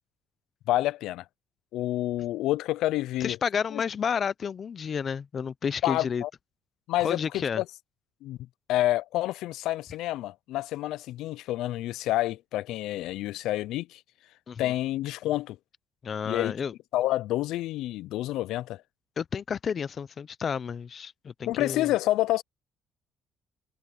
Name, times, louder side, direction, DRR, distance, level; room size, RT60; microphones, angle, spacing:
voice 1, 0.7-1.2 1.7-3.4 3.7-3.8 5.8-6.3 6.9-7.2 7.6-7.7 8.2-8.4 8.7-14.0 14.6-15.6 16.3-16.5 16.9-18.8 21.5-22.4, left 15 dB, 85° left, 0.4 m, -28 dB
voice 2, 3.2-6.2 7.0-7.6 14.5-14.7 16.0-16.7 19.2-21.9, left 7 dB, 35° left, 0.6 m, -31 dB
cardioid pair, 140°, 0 cm